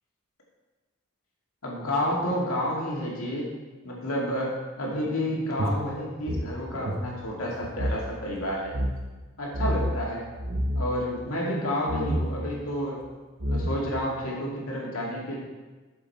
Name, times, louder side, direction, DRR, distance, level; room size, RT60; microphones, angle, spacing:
voice 1, 1.6-3.5 3.8-8.7 9.4-10.2 10.8-13.0 13.5-15.4, equal, 85° left, -3 dB, 2.2 m, -30 dB
sound 1, 5.6-8.0 8.3-8.4 8.7-9.0 9.5-10.0 10.4-10.9 11.9-12.3 13.0-13.1 13.4-14.0, equal, 70° right, 1.2 m, -28 dB
8.0 x 6.9 x 4.2 m, 1.3 s
head